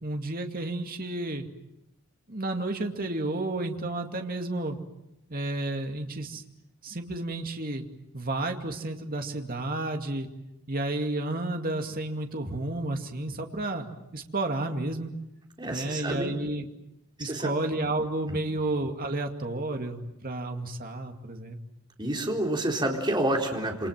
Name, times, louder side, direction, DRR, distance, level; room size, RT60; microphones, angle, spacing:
voice 1, 0.0-1.5 2.3-4.8 5.3-6.4 6.8-7.8 8.1-10.3 10.7-15.1 15.7-16.7 17.2-21.6, right 2 dB, 40° right, 4 dB, 2.3 m, -31 dB
voice 2, 15.6-16.3 17.2-17.5 22.0-23.9, right 1 dB, 20° right, 0 dB, 4.2 m, -28 dB
28.0 x 26.5 x 7.5 m, 0.89 s
head